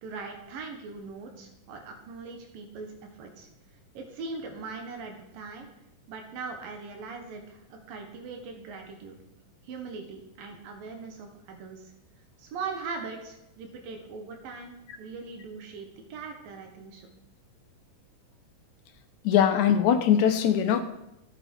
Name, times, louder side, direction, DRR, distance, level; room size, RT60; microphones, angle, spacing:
voice 1, 0.0-3.5 3.9-5.7 6.1-9.2 9.6-11.9 12.4-17.1, right 4 dB, 85° right, 4 dB, 3.2 m, -40 dB
voice 2, 19.2-20.8, left 9 dB, 65° left, 7 dB, 2.3 m, -21 dB
15.5 x 8.9 x 4.5 m, 0.88 s
omnidirectional pair, 3.9 m